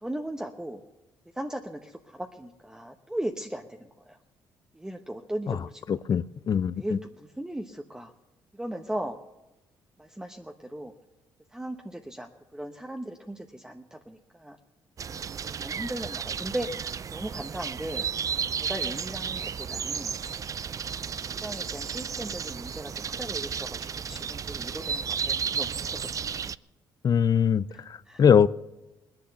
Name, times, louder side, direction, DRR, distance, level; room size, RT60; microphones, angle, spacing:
voice 1, 0.0-0.8 1.3-4.2 4.7-5.8 6.8-8.1 8.5-9.2 10.0-10.9 11.5-14.6 15.6-16.7 17.1-18.1 18.6-20.1 21.2-26.1 27.7-28.2, right 1 dB, 5° right, 3 dB, 1.0 m, -37 dB
voice 2, 5.9-7.0 27.0-28.5, left 7 dB, 45° left, 18 dB, 0.6 m, -22 dB
sound 1, 15.0-26.6, right 7 dB, 40° right, 0.4 m, -33 dB
19.0 x 10.5 x 6.9 m, 1.0 s
supercardioid pair, 70°, 9 cm